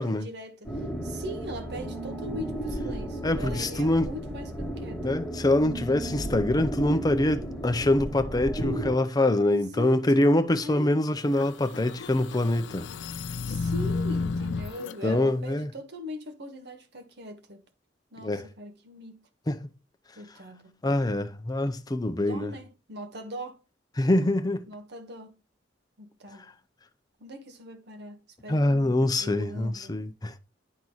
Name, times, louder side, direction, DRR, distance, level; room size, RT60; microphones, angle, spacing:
voice 1, 0.0-5.2 9.5-10.9 13.5-17.6 18.1-19.2 20.2-20.8 22.2-23.6 24.7-25.4 26.0-26.5 27.2-30.0, equal, 65° right, 1.2 m, -40 dB
sound 1, 0.6-8.9, right 1 dB, 5° left, 1.8 m, -34 dB
voice 2, 3.2-4.1 5.0-12.9 15.0-15.7 18.2-18.4 19.5-19.7 20.8-22.5 24.0-24.6 28.5-30.4, left 1 dB, 20° left, 0.6 m, -25 dB
sound 2, 11.2-15.0, left 4 dB, 70° left, 0.4 m, -32 dB
10.5 x 3.9 x 3.0 m
head